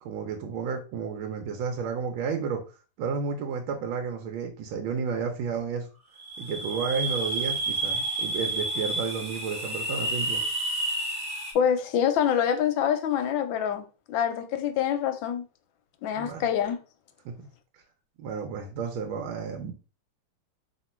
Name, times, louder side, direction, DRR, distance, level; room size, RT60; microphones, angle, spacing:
voice 1, 0.0-2.6 3.0-5.9 6.4-10.4 16.2-16.4 17.2-17.3 18.2-19.7, right 5 dB, 75° right, 1.4 m, -32 dB
sound 1, 6.2-11.5, right 2 dB, 35° right, 0.9 m, -30 dB
voice 2, 11.5-15.4 16.0-16.8, left 8 dB, 75° left, 1.2 m, -26 dB
3.1 x 2.9 x 4.2 m
omnidirectional pair, 2.3 m